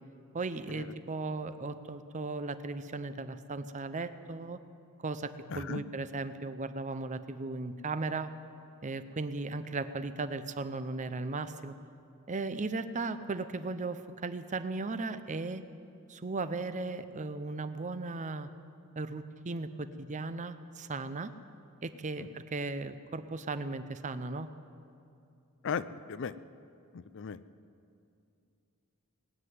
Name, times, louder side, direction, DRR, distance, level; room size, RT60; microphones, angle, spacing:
voice 1, 0.3-4.6 5.0-8.3 8.8-11.7 12.3-15.6 16.1-18.5 19.0-21.3 21.8-24.5, right 3 dB, 35° right, 11 dB, 0.6 m, -36 dB
voice 2, 5.5-5.8 22.2-22.3 25.6-26.3 26.9-27.4, left 6 dB, 60° left, 15 dB, 0.5 m, -36 dB
19.0 x 7.8 x 9.4 m, 2.6 s
head